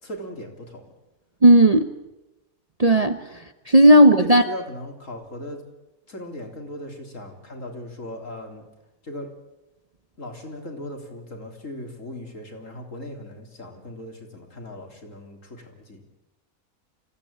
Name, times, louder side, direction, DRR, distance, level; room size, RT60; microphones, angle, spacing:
voice 1, 0.0-0.8 3.9-5.6 6.1-8.6 9.0-9.3 10.2-16.0, left 1 dB, 60° left, 3 dB, 3.9 m, -38 dB
voice 2, 1.4-1.9 2.8-3.2 3.7-4.4, right 1 dB, 30° right, 8 dB, 0.9 m, -13 dB
26.0 x 16.0 x 8.7 m, 1.0 s
omnidirectional pair, 1.5 m